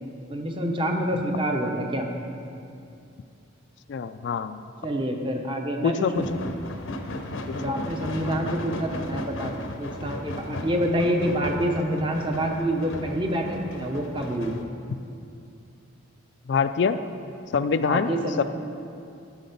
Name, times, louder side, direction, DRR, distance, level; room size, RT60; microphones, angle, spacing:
voice 1, 0.3-2.1 4.8-6.3 7.5-14.5 17.8-18.4, right 1 dB, 25° right, 2 dB, 0.8 m, -27 dB
voice 2, 3.9-4.6 5.8-6.4 16.5-17.0 17.5-18.1 18.4-18.5, left 5 dB, 60° left, 10 dB, 0.3 m, -24 dB
sound 1, 6.1-14.6, left 1 dB, 75° left, 0.7 m, -35 dB
12.0 x 6.4 x 5.3 m, 2.5 s
head